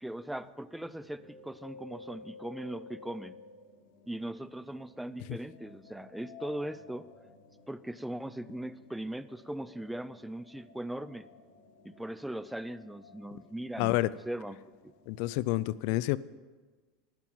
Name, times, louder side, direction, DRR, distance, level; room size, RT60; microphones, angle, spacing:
voice 1, 0.0-3.4 4.1-7.1 7.7-11.3 11.8-14.0 14.3-14.6, right 1 dB, 5° right, 15 dB, 0.4 m, -39 dB
sound 1, 0.7-15.4, left 4 dB, 85° left, 3.1 m, -54 dB
voice 2, 13.8-14.1 15.1-16.2, left 17 dB, 65° left, 19 dB, 0.3 m, -29 dB
11.5 x 5.8 x 7.7 m, 1.3 s
supercardioid pair, 120°, 0 cm